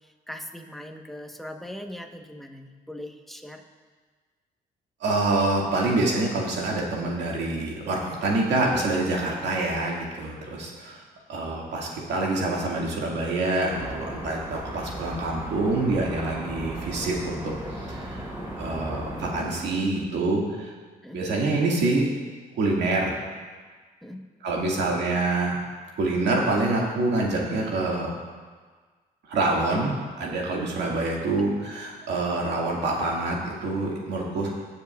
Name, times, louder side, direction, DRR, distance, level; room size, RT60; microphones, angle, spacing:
voice 1, 0.3-3.6 9.4-9.5 21.0-21.3 24.0-24.2 31.2-31.3, left 1 dB, ahead, 3 dB, 1.1 m, -40 dB
voice 2, 5.0-11.0 11.3-18.2 18.6-20.7 21.1-22.1 22.6-23.2 24.4-25.6 26.0-28.1 29.3-29.9 30.2-34.5, right 2 dB, 75° right, -2 dB, 2.0 m, -26 dB
sound 1, 13.7-19.5, right 1 dB, 15° right, 3.2 m, -36 dB
18.0 x 6.9 x 2.4 m, 1.5 s
supercardioid pair, 70°, 18 cm